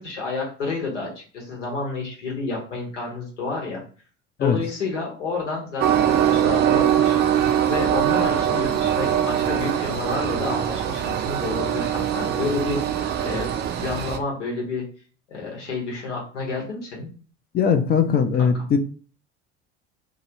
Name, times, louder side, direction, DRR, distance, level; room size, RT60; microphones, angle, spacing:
voice 1, 0.0-3.8 4.4-7.2 7.6-13.5 13.8-14.8 15.3-17.1 18.4-18.5, left 3 dB, 80° left, -1 dB, 1.2 m, -30 dB
Train, 5.8-14.2, right 10 dB, 30° right, 0.4 m, -22 dB
voice 2, 17.5-18.8, left 6 dB, 25° left, 7 dB, 0.5 m, -20 dB
2.9 x 2.3 x 2.9 m, 0.39 s
figure-of-eight pair, 65°, 36 cm